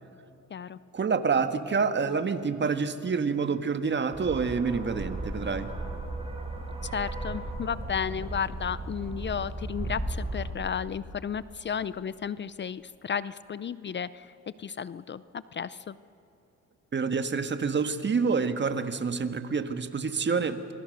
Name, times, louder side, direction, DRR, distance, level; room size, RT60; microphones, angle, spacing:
voice 1, 0.9-5.7 16.9-20.6, right 5 dB, 35° right, 9 dB, 1.6 m, -27 dB
sound 1, 4.1-10.5, right 2 dB, 20° right, 4.8 m, -35 dB
voice 2, 6.8-16.0, left 7 dB, 40° left, 16 dB, 0.6 m, -33 dB
27.5 x 22.5 x 6.6 m, 2.9 s
cardioid pair, 90°, 30 cm